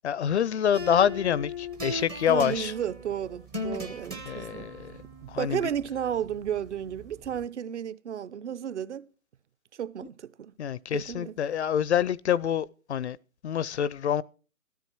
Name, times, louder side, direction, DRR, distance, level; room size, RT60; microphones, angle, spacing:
voice 1, 0.0-2.7 4.3-5.0 5.3-5.6 10.6-13.2 13.4-14.2, left 9 dB, 55° left, 0.5 m, -26 dB
sound 1, 0.7-7.4, left 2 dB, 10° right, 0.5 m, -39 dB
voice 2, 2.3-4.7 5.2-9.1 9.8-10.5 10.9-11.3, right 9 dB, 55° right, 0.8 m, -33 dB
13.5 x 13.0 x 4.5 m
figure-of-eight pair, 140°, 42 cm